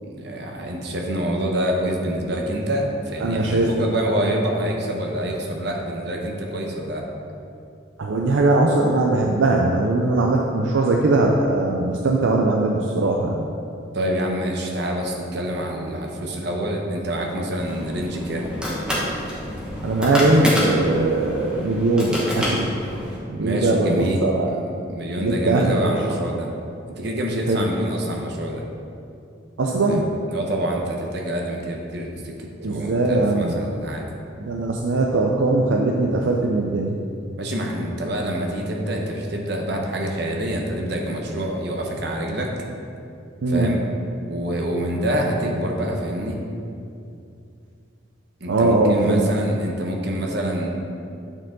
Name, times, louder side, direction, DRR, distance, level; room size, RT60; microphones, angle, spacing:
voice 1, 0.0-7.1 13.9-18.5 23.4-26.5 26.9-28.6 29.9-34.1 37.4-42.5 43.5-43.8 44.3-46.4 48.4-50.7, right 1 dB, 60° right, 1 dB, 0.9 m, -26 dB
voice 2, 3.2-3.8 8.0-13.4 19.8-22.7 23.3-24.6 25.2-25.9 27.5-27.6 29.6-30.1 32.6-33.6 34.4-37.0 43.4-43.7 48.5-49.3, right 2 dB, 80° right, 0 dB, 0.5 m, -20 dB
sound 1, 17.6-23.2, left 1 dB, 5° right, 1.3 m, -27 dB
9.0 x 4.6 x 3.8 m, 2.6 s
head